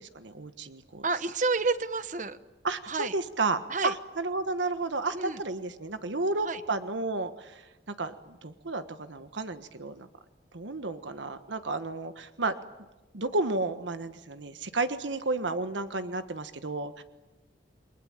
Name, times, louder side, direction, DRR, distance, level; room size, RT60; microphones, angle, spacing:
voice 1, 0.0-1.1 2.6-7.6 8.0-10.1 10.5-12.5 13.1-17.0, right 3 dB, 85° right, 9 dB, 1.4 m, -32 dB
voice 2, 1.0-2.4 2.8-3.1 3.7-3.9 5.1-5.4 6.4-6.6, right 3 dB, 40° right, 12 dB, 1.2 m, -29 dB
29.0 x 22.5 x 9.0 m, 1.1 s
head